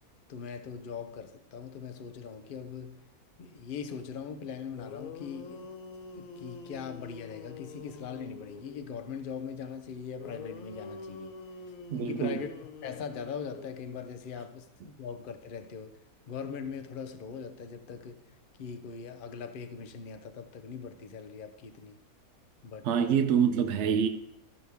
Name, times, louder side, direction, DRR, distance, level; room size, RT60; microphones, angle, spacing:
voice 1, 0.3-3.0 3.4-5.7 6.1-11.3 12.0-12.5 12.8-18.2 18.6-22.0 22.6-23.2, left 6 dB, 50° left, 0.7 m, -41 dB
sound 1, 4.5-4.6 4.8-8.9 10.2-14.2, left 4 dB, 70° left, 1.1 m, -46 dB
voice 2, 11.9-12.4 22.8-24.1, right 7 dB, 65° right, 0.7 m, -26 dB
12.5 x 6.3 x 3.5 m
omnidirectional pair, 1.5 m